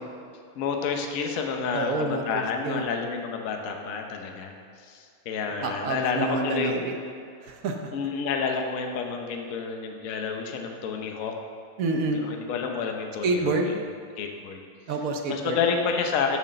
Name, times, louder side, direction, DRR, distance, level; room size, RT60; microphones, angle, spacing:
voice 1, 0.6-4.5 4.8-6.8 7.9-11.3 12.1-13.8 14.2-14.6 15.3-16.4, left 5 dB, 55° left, 3 dB, 1.0 m, -29 dB
voice 2, 1.7-2.8 5.6-7.0 7.4-7.9 11.8-12.2 13.2-13.7 14.9-15.6, right 3 dB, 60° right, 3 dB, 1.0 m, -28 dB
7.4 x 6.3 x 6.6 m, 2.2 s
omnidirectional pair, 2.1 m